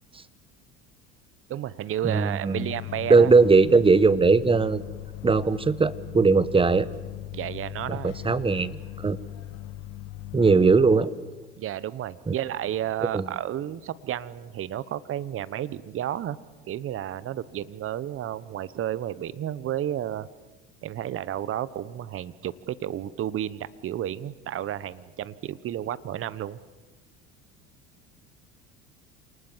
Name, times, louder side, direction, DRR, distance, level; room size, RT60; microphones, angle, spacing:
voice 1, 1.5-3.3 7.3-8.1 11.6-16.4 16.7-20.3 20.8-26.6, right 11 dB, 45° right, 17 dB, 1.1 m, -32 dB
voice 2, 2.0-2.7 3.1-4.8 5.2-6.9 7.9-9.2 10.3-11.1 12.3-12.4 13.1-13.2, right 4 dB, 15° right, 16 dB, 1.2 m, -19 dB
sound 1, 2.5-11.0, left 16 dB, 55° left, 1.3 m, -39 dB
28.0 x 19.5 x 7.5 m, 1.3 s
hypercardioid pair, 85°, 30 cm